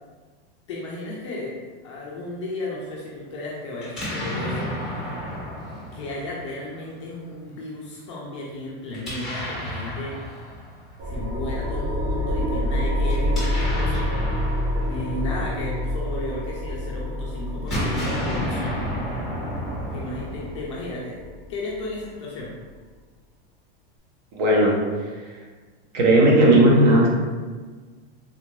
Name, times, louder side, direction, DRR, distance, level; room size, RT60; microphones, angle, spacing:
voice 1, 0.7-1.6 1.8-4.7 5.9-10.2 11.1-14.1 14.8-18.8 19.9-21.2 21.5-22.5, left 2 dB, 30° left, -4 dB, 0.4 m, -34 dB
Explosion, 3.8-6.8 8.9-11.1 13.0-16.5 17.5-20.9, equal, ahead, 0.7 m, -31 dB
sound 1, 11.0-22.1, left 1 dB, 80° right, 1.4 m, -28 dB
voice 2, 24.3-24.8 25.9-27.1, right 1 dB, 45° right, -2 dB, 0.7 m, -15 dB
3.5 x 2.5 x 3.1 m, 1.4 s
supercardioid pair, 175°, 30 cm